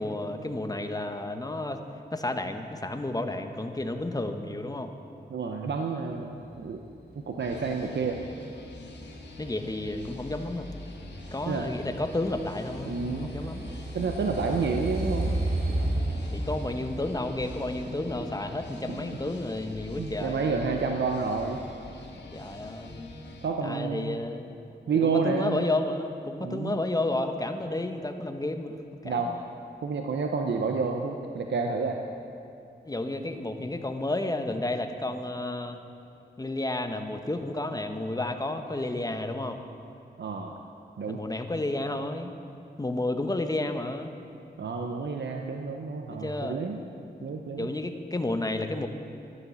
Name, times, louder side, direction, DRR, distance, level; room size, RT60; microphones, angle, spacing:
voice 1, 0.0-1.8 2.1-4.9 9.4-10.7 11.3-13.7 16.3-20.6 22.3-23.1 23.6-24.6 25.0-28.8 29.0-29.4 32.8-35.8 36.4-39.6 41.1-42.3 42.8-44.1 46.1-46.6 47.2-47.3 47.6-48.9, left 2 dB, 20° left, 7 dB, 1.0 m, -31 dB
voice 2, 5.3-6.8 7.3-8.2 11.5-11.7 12.9-13.3 13.9-15.3 20.0-21.6 23.4-24.2 24.9-25.6 26.4-26.8 29.0-29.3 29.8-32.0 40.2-40.5 41.0-41.2 44.6-46.8 47.2-47.7, right 4 dB, 75° right, 3 dB, 0.8 m, -29 dB
sound 1, 7.4-23.5, left 2 dB, 75° left, 1.5 m, -45 dB
sound 2, 8.2-19.3, right 1 dB, 55° right, 2.3 m, -34 dB
13.0 x 10.0 x 7.0 m, 2.7 s
cardioid pair, 70°, 18 cm